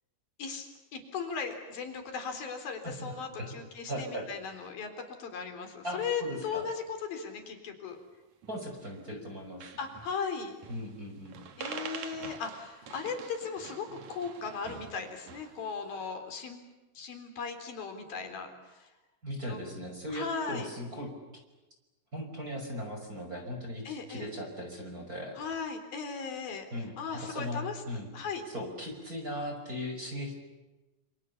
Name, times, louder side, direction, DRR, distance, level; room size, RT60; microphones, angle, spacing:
voice 1, 0.9-8.0 9.8-10.5 11.6-16.6 17.0-18.9 19.5-19.6 20.1-20.7 23.9-24.3 25.4-26.7 27.0-27.8 28.1-28.4, left 5 dB, 50° left, 6 dB, 5.3 m, -37 dB
voice 2, 2.8-3.5 3.9-4.7 5.8-6.6 8.5-9.7 10.7-11.4 19.2-21.1 22.1-25.4 26.7-28.1 28.5-30.3, equal, 20° right, 2 dB, 5.6 m, -38 dB
sound 1, 8.4-9.0 9.3-9.4 9.6-10.2 10.6-11.0 11.3-15.6, right 6 dB, 50° right, 2.5 m, -45 dB
28.5 x 28.5 x 7.2 m, 1.1 s
omnidirectional pair, 5.4 m